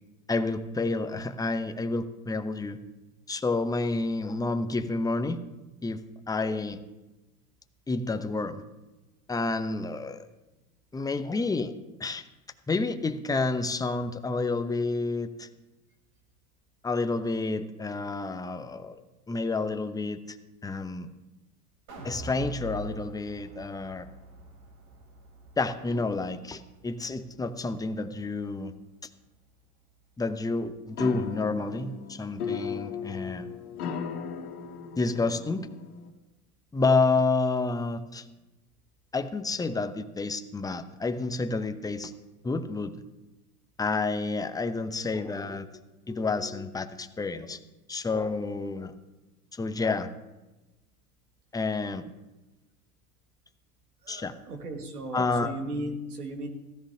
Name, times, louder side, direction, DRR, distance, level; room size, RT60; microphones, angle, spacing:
voice 1, 0.3-2.8 3.3-5.4 5.8-6.0 6.3-6.8 7.9-8.6 9.3-10.2 10.9-11.7 12.0-12.2 12.7-15.5 16.8-19.0 19.3-20.4 20.6-21.1 22.0-24.1 25.6-28.7 30.2-33.5 35.0-35.7 36.7-38.2 39.1-42.1 42.4-42.9 43.8-45.7 46.1-47.6 47.9-48.9 49.5-50.1 51.5-52.0 54.1-54.3 55.1-55.5, left 3 dB, 10° left, 9 dB, 0.7 m, -29 dB
sound 1, 21.9-28.1 28.5-28.6, right 1 dB, 55° right, 4.3 m, -45 dB
sound 2, 30.9-36.1, left 5 dB, 75° left, 1.9 m, -37 dB
voice 2, 54.0-56.5, right 1 dB, 85° right, 4 dB, 1.9 m, -36 dB
15.5 x 14.0 x 2.8 m, 1.1 s
hypercardioid pair, 90°, 45 cm